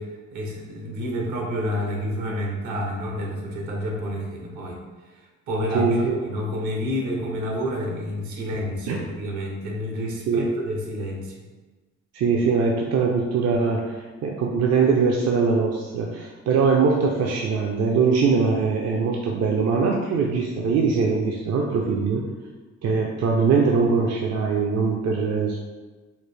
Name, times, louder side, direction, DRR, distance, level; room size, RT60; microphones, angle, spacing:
voice 1, 0.0-4.8 5.1-11.3, equal, 80° right, 0 dB, 1.0 m, -29 dB
voice 2, 5.7-6.2 8.9-9.0 10.3-10.5 12.1-22.2 22.8-25.6, right 5 dB, 60° right, 0 dB, 0.5 m, -22 dB
4.9 x 2.0 x 3.3 m, 1.2 s
cardioid pair, 90°, 30 cm